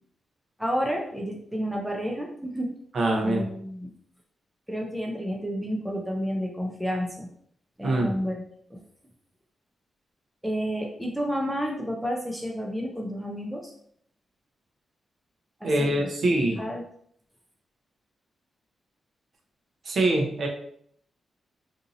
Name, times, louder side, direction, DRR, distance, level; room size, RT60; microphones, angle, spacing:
voice 1, 0.6-2.7 3.2-3.9 4.7-7.3 7.8-8.4 8.7-8.8 10.4-13.7 15.6-15.9 16.2-16.3 16.6-16.8, equal, ahead, -1 dB, 0.4 m, -30 dB
voice 2, 2.9-3.5 7.8-8.2 15.6-16.6 19.8-20.5, right 1 dB, 50° right, 1 dB, 0.6 m, -24 dB
2.7 x 2.6 x 3.9 m, 0.66 s
wide cardioid pair, 165°, 0 cm